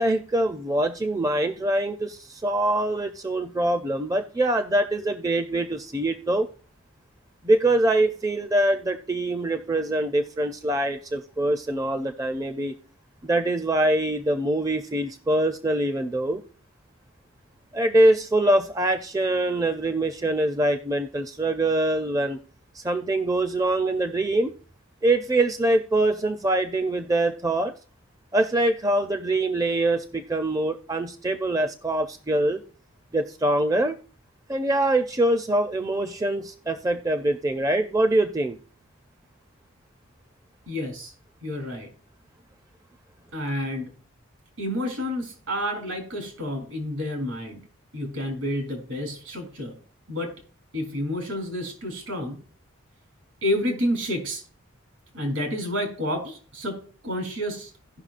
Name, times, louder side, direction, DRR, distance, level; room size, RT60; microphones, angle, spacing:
voice 1, 0.0-6.5 7.4-12.7 13.2-16.4 17.7-22.4 22.7-24.5 25.0-27.7 28.3-32.6 33.1-34.0 34.5-38.6, right 1 dB, 15° right, 0.4 m, -24 dB
voice 2, 40.7-41.1 41.4-41.9 43.3-43.9 44.6-47.6 47.9-49.8 50.1-50.3 50.7-52.4 53.4-54.4 55.1-56.8 57.0-57.7, left 1 dB, 80° right, 3.1 m, -29 dB
17.0 x 5.8 x 2.5 m
head